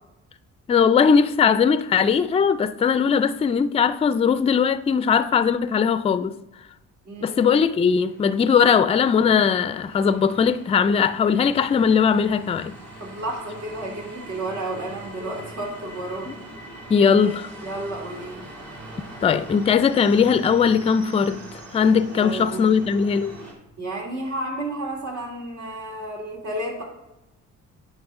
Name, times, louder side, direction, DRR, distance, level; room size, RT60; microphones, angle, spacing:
voice 1, 0.7-6.4 7.2-12.8 16.3-16.4 16.9-17.4 19.2-21.4 21.7-23.4, left 6 dB, 20° left, 0.3 m, -19 dB
voice 2, 7.0-7.4 13.0-16.3 17.0-18.5 22.1-22.7 23.8-26.8, right 1 dB, 75° right, 2.8 m, -32 dB
sound 1, 7.5-23.5, right 1 dB, 60° right, 2.4 m, -42 dB
9.6 x 5.3 x 3.6 m
cardioid pair, 90°, 30 cm